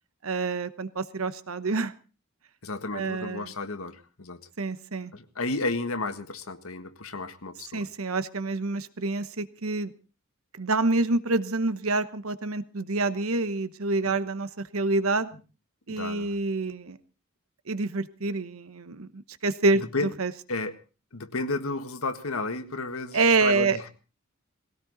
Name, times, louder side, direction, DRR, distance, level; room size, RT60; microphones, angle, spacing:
voice 1, 0.2-1.9 2.9-3.5 4.6-5.1 7.7-9.9 10.6-15.3 15.9-17.0 17.7-19.8 20.2-20.3 23.1-23.9, right 3 dB, 85° right, 13 dB, 1.0 m, -27 dB
voice 2, 2.6-4.4 5.1-7.8 14.0-14.1 15.9-16.3 19.7-20.1 20.5-20.8 21.1-23.8, left 3 dB, 90° left, 8 dB, 1.6 m, -32 dB
19.0 x 17.5 x 4.0 m, 0.35 s
head